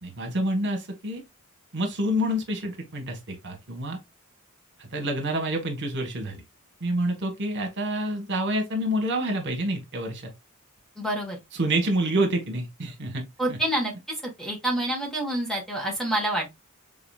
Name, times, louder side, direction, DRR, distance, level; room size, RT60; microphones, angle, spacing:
voice 1, 0.0-1.2 1.7-4.0 4.8-6.4 6.8-10.2 11.5-13.6, right 1 dB, 55° right, 1.4 m, -28 dB
voice 2, 11.0-11.4 13.4-13.9 14.4-16.6, right 1 dB, ahead, 1.4 m, -27 dB
4.8 x 3.9 x 2.3 m
head